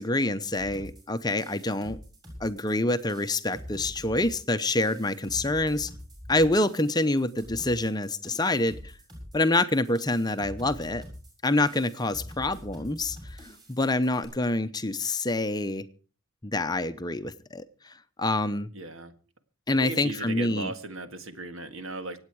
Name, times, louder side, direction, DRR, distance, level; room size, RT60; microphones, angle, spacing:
voice 1, 0.0-2.0 2.4-5.9 6.3-8.9 9.3-11.0 11.4-15.8 16.4-18.7 19.7-20.7, left 2 dB, 20° left, 10 dB, 0.7 m, -27 dB
sound 1, 0.5-14.2, equal, 20° right, 6.8 m, -45 dB
voice 2, 18.7-19.1 19.8-22.2, right 2 dB, 70° right, 9 dB, 1.7 m, -37 dB
25.5 x 8.8 x 4.7 m, 0.39 s
head